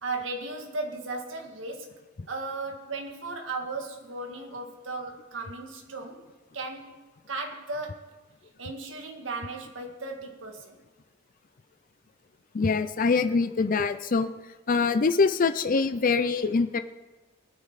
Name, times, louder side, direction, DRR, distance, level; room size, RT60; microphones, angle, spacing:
voice 1, 0.0-1.9 2.3-6.3 6.5-7.0 7.3-8.1 8.6-10.8, right 3 dB, 70° right, 3 dB, 1.9 m, -36 dB
voice 2, 12.5-14.3 14.7-16.8, left 4 dB, 45° left, 9 dB, 0.5 m, -24 dB
20.0 x 9.6 x 4.1 m, 1.2 s
head